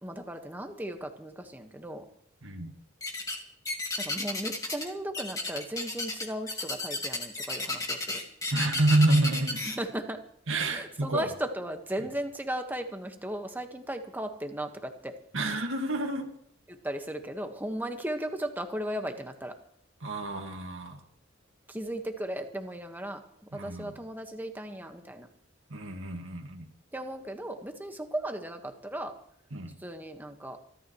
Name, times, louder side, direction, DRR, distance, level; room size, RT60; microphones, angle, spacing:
voice 1, 0.0-2.1 4.0-8.2 9.6-10.2 10.7-15.1 16.7-19.6 21.7-25.3 26.9-29.2 29.8-30.6, right 1 dB, 10° right, 5 dB, 1.5 m, -36 dB
voice 2, 2.4-2.7 8.5-9.6 10.5-11.3 15.3-16.3 20.0-21.0 23.5-23.9 25.7-26.7 29.5-29.8, right 2 dB, 90° right, 2 dB, 2.0 m, -28 dB
sound 1, 3.0-3.4 3.7-4.9 5.1-9.8, left 2 dB, 20° left, 2.1 m, -33 dB
27.0 x 13.0 x 3.2 m, 0.65 s
head